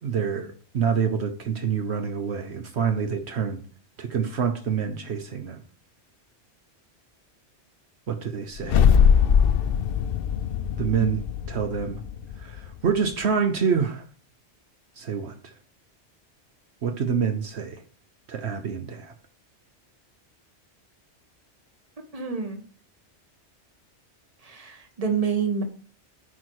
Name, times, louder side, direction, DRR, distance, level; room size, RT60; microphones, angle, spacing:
voice 1, 0.0-3.6 4.0-5.6 8.1-8.9 10.8-11.2 11.5-12.0 12.4-14.0 15.0-15.5 16.8-17.8 18.3-19.1, right 6 dB, 70° right, 1.1 m, -27 dB
sound 1, 8.6-12.9, left 7 dB, 65° left, 0.7 m, -21 dB
voice 2, 22.1-22.6 24.4-25.6, right 6 dB, 35° right, 1.4 m, -27 dB
9.9 x 4.6 x 4.7 m
omnidirectional pair, 1.2 m